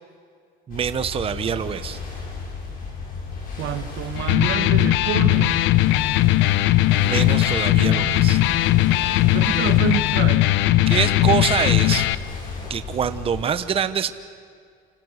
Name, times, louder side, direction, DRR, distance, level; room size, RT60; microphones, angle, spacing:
sound 1, 0.7-13.4, left 4 dB, 45° left, 7.5 m, -34 dB
voice 1, 0.7-2.0 7.0-8.4 10.9-12.1 12.7-14.1, right 8 dB, 30° right, 11 dB, 1.0 m, -25 dB
voice 2, 3.6-5.7 7.9-8.4 9.3-10.5, right 10 dB, 65° right, 9 dB, 1.8 m, -28 dB
Electric guitar, 4.2-12.2, left 15 dB, 75° left, 0.9 m, -19 dB
29.0 x 26.0 x 6.6 m, 2.2 s
cardioid pair, 140°, 20 cm